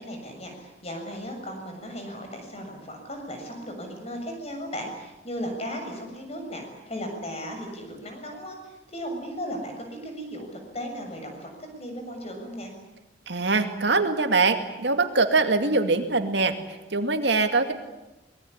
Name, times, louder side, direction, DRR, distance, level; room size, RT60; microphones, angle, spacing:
voice 1, 0.0-12.7, equal, 35° left, 4 dB, 7.1 m, -36 dB
voice 2, 13.3-16.5 16.9-17.7, right 3 dB, 70° right, 6 dB, 2.4 m, -23 dB
24.5 x 21.5 x 9.9 m, 1.0 s
head